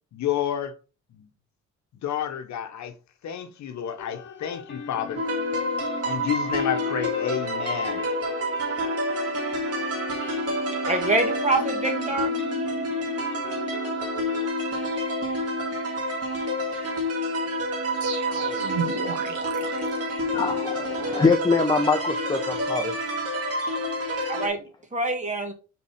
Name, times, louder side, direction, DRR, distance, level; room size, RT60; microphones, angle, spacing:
voice 1, 0.1-0.7 1.1-1.3 2.0-2.9 3.2-5.2 6.0-8.0, left 9 dB, 65° left, 1.0 m, -30 dB
sound 1, 4.0-14.5, left 6 dB, 40° left, 1.3 m, -39 dB
sound 2, 5.1-24.5, equal, 55° right, 2.0 m, -28 dB
voice 2, 10.8-12.3 24.3-24.6 24.9-25.5, right 2 dB, 25° right, 1.7 m, -25 dB
sound 3, 18.0-20.8, right 4 dB, 70° right, 1.7 m, -34 dB
voice 3, 20.3-22.9, left 4 dB, 15° left, 0.7 m, -24 dB
4.3 x 4.1 x 5.6 m
cardioid pair, 90°, 30 cm